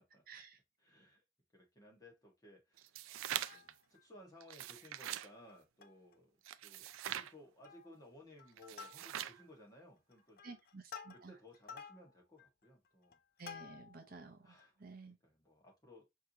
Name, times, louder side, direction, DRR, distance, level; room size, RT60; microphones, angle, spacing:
voice 1, 0.3-0.6 10.4-11.3 13.4-15.2, right 3 dB, 45° right, 0.7 m, -53 dB
voice 2, 0.8-1.2 1.5-2.9 3.5-6.3 6.6-10.6 11.1-13.2 14.4-16.1, left 1 dB, 20° left, 1.4 m, -60 dB
sound 1, 2.8-3.7 4.4-5.3 6.5-7.3 8.6-9.4, right 12 dB, 85° right, 0.3 m, -43 dB
Plucked string instrument, 3.2-4.0 4.5-4.6 4.8-5.0 5.5-6.1 6.5-6.6 6.9-7.3 7.6-8.0 8.4-9.4 10.0-14.1 14.6-14.7, left 6 dB, 50° left, 0.5 m, -53 dB
4.7 x 2.9 x 2.8 m
head